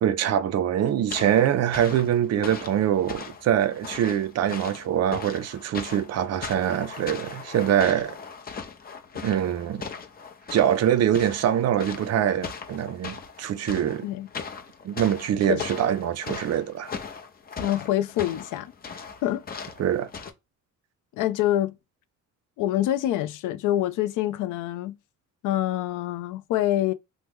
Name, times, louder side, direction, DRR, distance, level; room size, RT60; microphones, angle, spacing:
voice 1, 0.0-8.2 9.2-9.9 10.5-14.1 14.8-16.9 19.8-20.1, right 10 dB, 55° right, 0.5 m, -24 dB
sound 1, 1.1-20.3, left 5 dB, 30° left, 0.6 m, -39 dB
voice 2, 17.6-18.7 19.2-19.4 21.1-21.7 22.6-25.0 25.4-26.9, left 13 dB, 85° left, 0.5 m, -26 dB
3.0 x 2.1 x 3.4 m
cardioid pair, 90°, 30 cm